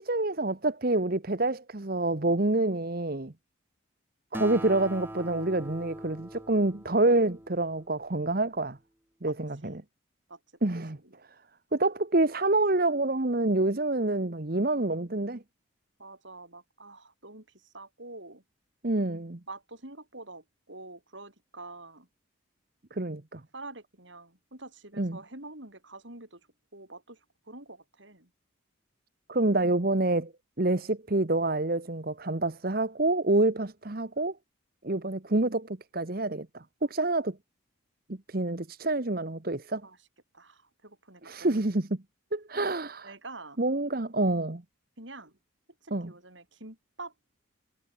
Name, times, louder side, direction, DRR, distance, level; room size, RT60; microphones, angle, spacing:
voice 1, 0.0-3.3 4.3-8.8 9.2-9.8 10.6-11.0 11.7-15.4 18.8-19.4 22.9-23.4 25.0-25.2 29.3-30.3 30.6-34.3 34.8-36.6 36.9-37.4 38.1-39.8 41.2-42.0 42.3-43.1 43.6-44.6 45.9-46.1, right 2 dB, 45° right, 1.2 m, -27 dB
Acoustic guitar, 4.3-8.1, right 1 dB, 10° right, 1.9 m, -42 dB
voice 2, 16.0-18.4 19.5-22.1 23.5-26.4 26.7-27.2 27.5-28.3 39.8-40.0 40.3-41.6 43.0-43.6 45.0-45.3 45.8-47.1, right 2 dB, 65° right, 7.0 m, -46 dB
head